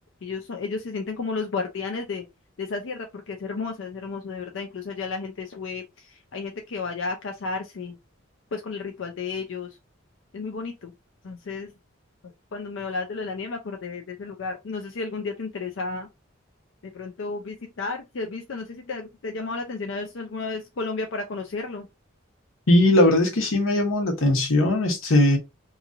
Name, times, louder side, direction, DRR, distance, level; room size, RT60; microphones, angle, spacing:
voice 1, 0.2-2.2 2.6-7.9 8.5-9.7 10.3-10.9 11.2-11.7 12.5-16.1 16.8-21.9, left 4 dB, 65° left, 0.5 m, -32 dB
voice 2, 22.7-25.4, left 1 dB, 80° left, 0.9 m, -19 dB
2.9 x 2.5 x 2.5 m
head